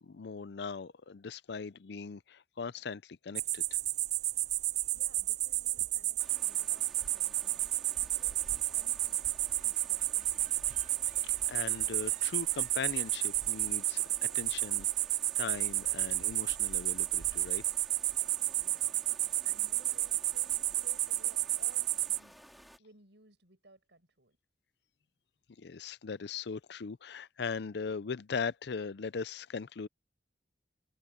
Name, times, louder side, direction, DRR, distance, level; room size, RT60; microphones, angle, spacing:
voice 1, 0.0-3.8 11.2-14.9 15.4-17.6 25.6-29.9, left 5 dB, 65° left, 0.5 m, -39 dB
sound 1, 3.4-22.2, right 14 dB, 40° right, 0.4 m, -32 dB
voice 2, 4.9-7.7 8.0-10.8 18.6-19.0 19.4-22.4 22.8-24.4, right 2 dB, 75° right, 7.3 m, -60 dB
sound 2, 6.2-22.8, equal, ahead, 3.2 m, -56 dB
head